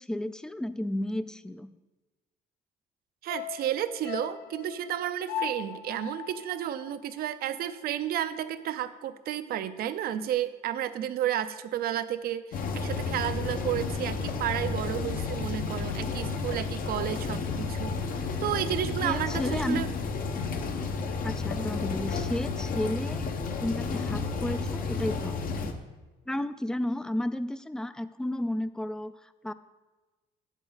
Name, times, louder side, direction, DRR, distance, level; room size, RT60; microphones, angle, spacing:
voice 1, 0.0-1.8 19.0-19.9 21.2-23.3 23.6-25.7 26.3-29.5, left 1 dB, 5° left, 14 dB, 0.3 m, -33 dB
voice 2, 3.2-19.9, right 11 dB, 65° right, 13 dB, 0.6 m, -32 dB
sound 1, 3.3-7.7 8.0-8.1, left 9 dB, 80° left, 0.9 m, -39 dB
sound 2, 12.5-25.7, left 4 dB, 55° left, 0.9 m, -32 dB
9.0 x 8.2 x 4.0 m, 1.2 s
cardioid pair, 110°, 17 cm